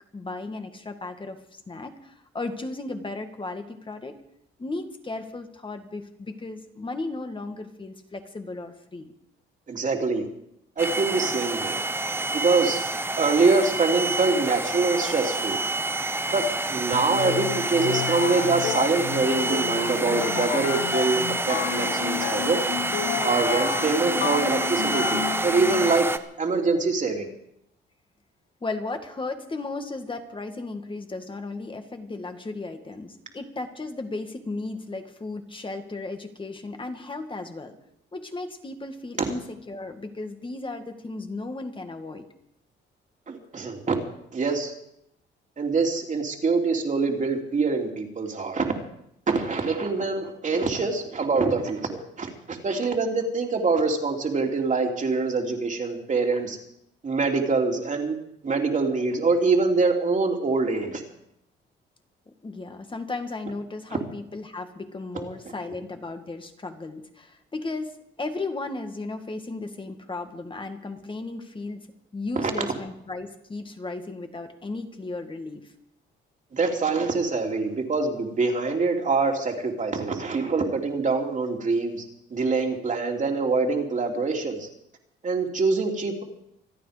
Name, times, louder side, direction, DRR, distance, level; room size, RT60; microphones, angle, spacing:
voice 1, 0.1-4.2 4.6-9.1 28.6-37.8 38.1-42.2 62.4-71.9 72.1-75.7, left 3 dB, 25° left, 6 dB, 2.1 m, -35 dB
voice 2, 9.7-10.3 10.8-11.8 12.3-12.8 13.2-15.6 16.3-22.6 23.2-26.1 26.4-27.3 43.3-43.9 44.3-44.7 45.6-48.7 49.3-56.6 57.0-58.1 58.4-61.0 72.4-72.5 76.5-82.0 82.3-84.7 85.2-86.2, right 4 dB, 40° right, 2 dB, 3.1 m, -24 dB
sound 1, 10.8-26.2, right 2 dB, 10° right, 1.0 m, -28 dB
sound 2, 16.9-26.1, left 14 dB, 80° left, 0.7 m, -31 dB
26.5 x 9.4 x 5.2 m, 0.76 s
cardioid pair, 90°, 20 cm